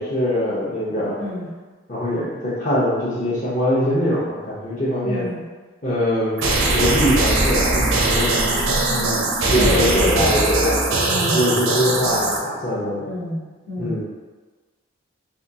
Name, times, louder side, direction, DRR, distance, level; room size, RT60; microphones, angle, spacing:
voice 1, 0.0-1.2 1.9-5.2 5.8-6.4 6.7-8.6 8.9-10.8 11.3-13.1 13.8-14.0, equal, 40° left, -9 dB, 0.6 m, -22 dB
voice 2, 5.0-5.4 9.4-10.3 11.0-11.4 13.0-13.4 13.7-13.9, equal, 70° left, -7 dB, 1.0 m, -27 dB
sound 1, 6.4-12.4, right 2 dB, 80° right, 0.6 m, -20 dB
3.4 x 2.6 x 2.7 m, 1.3 s
head